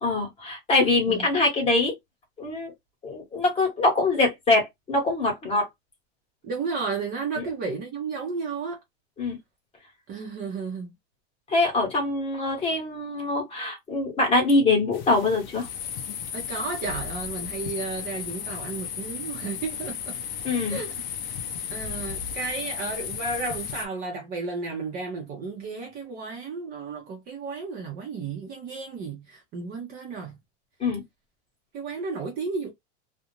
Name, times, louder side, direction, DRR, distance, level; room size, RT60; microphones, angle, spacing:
voice 1, 0.0-1.9 2.4-2.7 3.0-5.6 7.4-7.5 9.2-9.4 11.5-15.7 20.4-20.8 30.8-31.0, left 2 dB, 15° left, 0.9 m, -23 dB
voice 2, 6.4-8.8 10.1-10.9 16.3-20.2 20.7-20.9 21.7-30.4 31.7-32.7, right 4 dB, 25° right, 0.5 m, -33 dB
sound 1, 14.9-23.9, left 8 dB, 40° left, 0.6 m, -34 dB
2.4 x 2.1 x 2.9 m
supercardioid pair, 160°, 34 cm